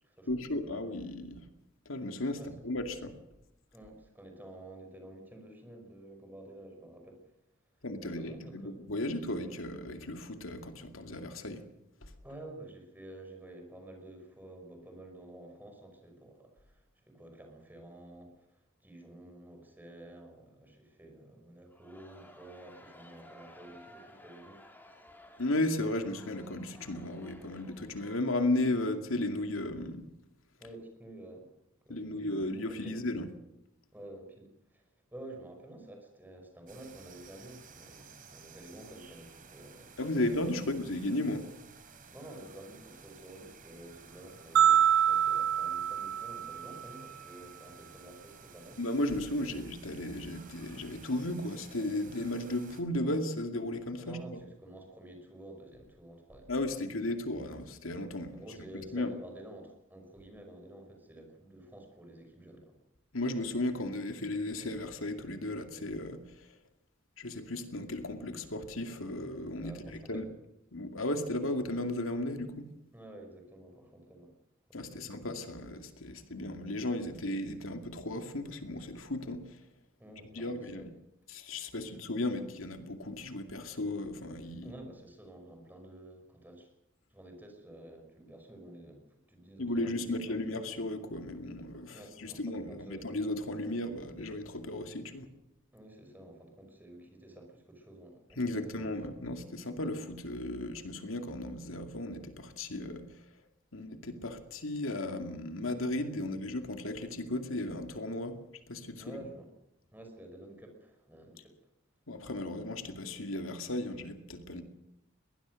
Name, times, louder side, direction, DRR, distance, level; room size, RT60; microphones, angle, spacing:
voice 1, 0.3-1.4 1.9-3.1 7.8-11.6 12.0-12.1 25.4-30.0 31.9-33.3 40.0-41.5 48.8-54.4 56.5-58.3 58.9-59.1 63.1-66.5 67.2-70.2 70.7-72.7 74.7-79.6 80.3-80.9 81.3-84.7 89.6-95.3 98.4-103.0 103.7-108.4 108.7-109.0 112.1-114.6, left 1 dB, 80° left, 6 dB, 2.3 m, -35 dB
voice 2, 3.7-7.2 7.8-8.8 12.2-24.6 30.6-31.5 31.8-33.0 33.9-40.8 42.1-48.8 54.0-56.8 58.3-62.7 69.6-70.3 72.9-74.3 74.7-75.2 80.0-80.9 81.9-82.0 84.6-86.7 87.1-90.4 91.9-93.1 95.7-98.9 106.2-106.4 109.0-109.5 109.9-111.7, right 1 dB, 10° right, 3 dB, 5.5 m, -50 dB
Crowd, 21.7-28.9, left 1 dB, 10° left, 3.6 m, -56 dB
sound 1, 36.7-52.8, right 5 dB, 45° right, 3.6 m, -54 dB
sound 2, 44.6-46.9, right 9 dB, 80° right, 0.8 m, -26 dB
22.0 x 19.5 x 6.4 m, 0.87 s
head